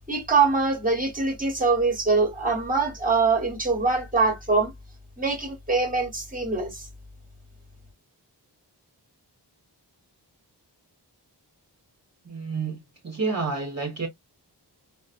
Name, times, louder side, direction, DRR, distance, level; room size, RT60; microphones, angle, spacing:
voice 1, 0.1-4.7 5.2-6.9, right 4 dB, 20° right, 1.3 m, -23 dB
voice 2, 12.2-12.8 13.0-14.1, right 4 dB, 40° right, 1.0 m, -29 dB
4.1 x 2.1 x 2.4 m
wide cardioid pair, 65°, 42 cm